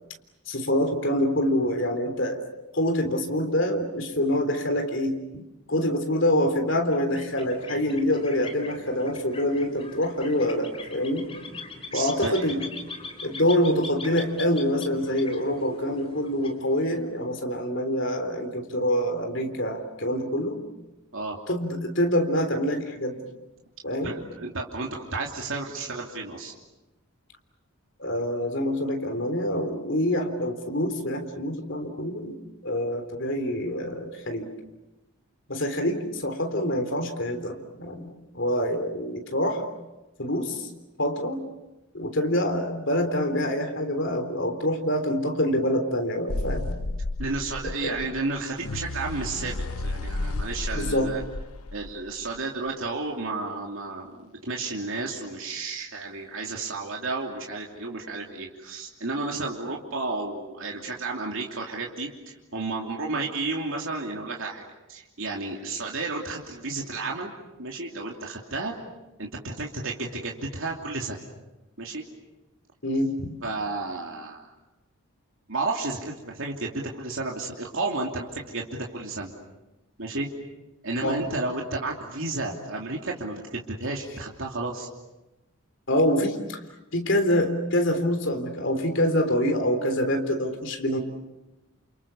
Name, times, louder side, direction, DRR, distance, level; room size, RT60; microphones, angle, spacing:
voice 1, 0.5-2.4 2.7-5.4 5.7-11.3 11.9-12.6 13.2-20.6 21.5-23.2 23.8-24.1 28.0-32.4 32.6-34.5 35.5-39.6 40.2-40.7 41.0-41.5 41.9-46.7 47.6-48.0 50.7-51.2 72.8-73.1 81.0-81.2 85.9-86.6 86.9-91.0, left 1 dB, 55° left, 5 dB, 3.6 m, -26 dB
sound 1, 6.8-17.2, left 3 dB, 25° left, 3.6 m, -42 dB
voice 2, 11.9-12.5 21.1-21.4 24.0-26.5 47.2-49.6 49.8-51.2 51.7-64.6 64.9-67.3 67.6-68.7 69.2-71.2 71.8-72.0 73.4-74.5 75.5-79.3 80.0-80.3 80.8-84.9, right 3 dB, 65° right, -1 dB, 2.9 m, -32 dB
sound 2, 46.3-52.4, left 2 dB, 85° left, 1.1 m, -32 dB
29.0 x 29.0 x 7.1 m, 1.0 s
head